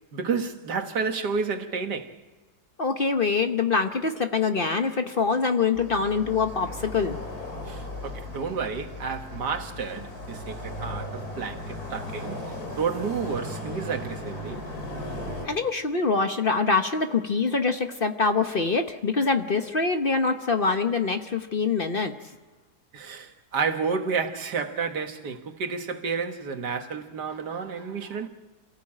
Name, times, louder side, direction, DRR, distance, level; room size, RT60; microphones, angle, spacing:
voice 1, 0.1-2.2 7.7-14.6 22.9-28.3, right 5 dB, 85° right, 2.1 m, -31 dB
voice 2, 2.8-7.2 15.4-22.1, left 4 dB, 40° left, 1.0 m, -24 dB
sound 1, 5.7-15.4, left 1 dB, 65° left, 3.8 m, -37 dB
28.0 x 15.0 x 8.7 m
omnidirectional pair, 1.7 m